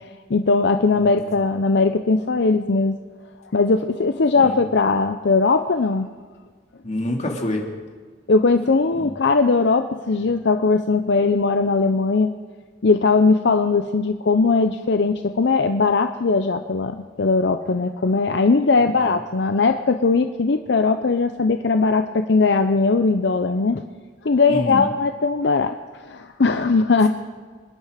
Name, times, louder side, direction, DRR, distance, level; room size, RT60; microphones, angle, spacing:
voice 1, 0.3-2.9 3.5-6.1 8.3-12.3 12.8-23.8 24.2-25.8 26.0-27.1, left 4 dB, 70° left, 8 dB, 0.6 m, -19 dB
voice 2, 0.9-1.3 4.4-4.6 6.8-7.6 8.9-9.1 18.8-19.2 24.5-24.9, left 1 dB, 40° left, 1 dB, 2.4 m, -28 dB
25.5 x 10.5 x 5.0 m, 1.5 s
head